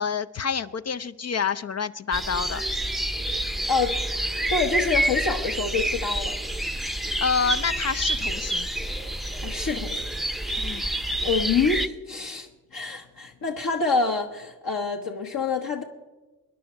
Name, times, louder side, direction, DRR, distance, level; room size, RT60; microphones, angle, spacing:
voice 1, 0.0-2.6 7.2-8.7 10.6-10.9, left 6 dB, 35° left, 12 dB, 0.5 m, -28 dB
sound 1, 2.1-11.9, right 1 dB, ahead, 0.7 m, -28 dB
voice 2, 4.5-6.3 9.4-10.0 10.4-10.8 11.2-15.8, left 4 dB, 50° left, 1 dB, 1.3 m, -27 dB
22.5 x 10.0 x 4.5 m, 1.2 s
supercardioid pair, 50°, 46 cm